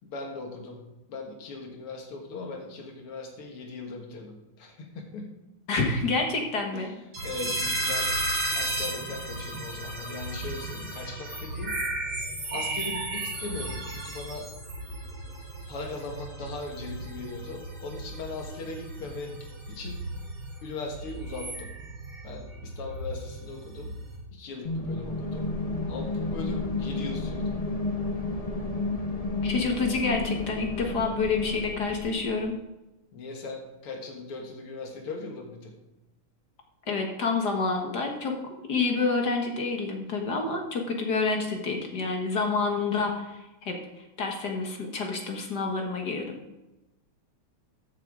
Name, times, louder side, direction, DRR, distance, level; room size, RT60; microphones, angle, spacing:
voice 1, 0.0-5.4 6.7-6.9 7.2-11.8 12.5-14.5 15.7-19.4 19.7-20.0 20.6-21.7 22.2-23.9 24.3-25.5 25.9-27.5 33.1-35.8, left 3 dB, 85° left, 2 dB, 2.6 m, -39 dB
voice 2, 5.7-6.9 29.4-32.5 36.9-38.4 38.7-46.4, left 4 dB, 55° left, 2 dB, 1.7 m, -28 dB
sound 1, 7.1-24.2, right 1 dB, 80° right, 4.7 m, -34 dB
sound 2, 24.6-32.4, left 3 dB, 30° left, 0.7 m, -31 dB
13.5 x 8.2 x 3.7 m, 1.0 s
omnidirectional pair, 2.4 m